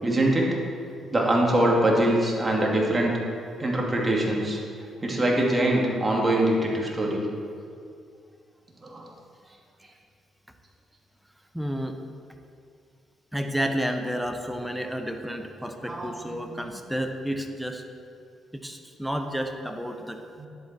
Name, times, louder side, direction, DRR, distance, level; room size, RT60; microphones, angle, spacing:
voice 1, 0.0-0.5 1.1-3.2 3.6-4.6 5.0-7.3 8.8-9.1 15.9-16.4 20.4-20.5, right 1 dB, 25° right, -2 dB, 2.7 m, -23 dB
voice 2, 11.5-12.0 13.3-17.8 18.5-20.2, equal, 5° right, 5 dB, 1.2 m, -31 dB
10.5 x 8.4 x 4.6 m, 2.4 s
hypercardioid pair, 50°, 0 cm